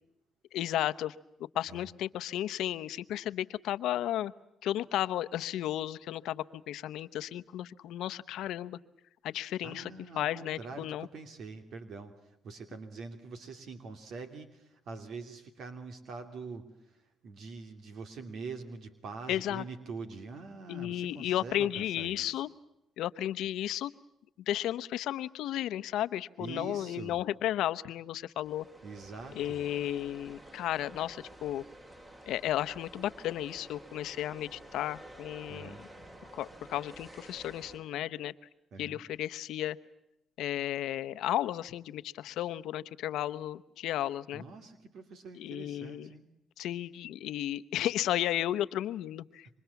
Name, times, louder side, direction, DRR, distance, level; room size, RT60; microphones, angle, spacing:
voice 1, 0.5-1.1 1.5-4.3 4.6-8.8 9.2-9.9 10.2-11.1 19.3-19.6 20.7-22.5 23.0-23.9 24.5-28.7 29.3-31.6 32.3-35.9 36.3-38.3 38.8-39.8 40.4-44.4 45.3-46.1 46.6-49.5, left 12 dB, 85° left, 13 dB, 0.9 m, -33 dB
voice 2, 9.6-22.4 26.4-27.2 28.8-29.7 35.5-35.8 38.7-39.0 44.3-46.2, right 4 dB, 70° right, 8 dB, 2.8 m, -44 dB
sound 1, 28.4-37.8, right 1 dB, 30° right, 7.7 m, -51 dB
27.5 x 25.0 x 7.1 m, 0.84 s
cardioid pair, 90°, 0 cm